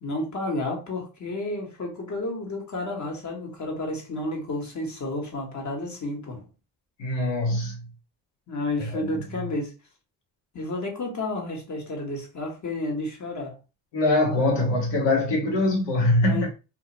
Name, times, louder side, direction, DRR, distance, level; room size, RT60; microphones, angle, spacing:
voice 1, 0.0-6.5 8.5-9.7 10.5-13.6 16.2-16.5, left 2 dB, 40° left, 1.3 m, -31 dB
voice 2, 7.0-7.8 8.8-9.1 13.9-16.5, left 2 dB, 85° left, 1.2 m, -23 dB
2.5 x 2.4 x 3.0 m
supercardioid pair, 65°, 42 cm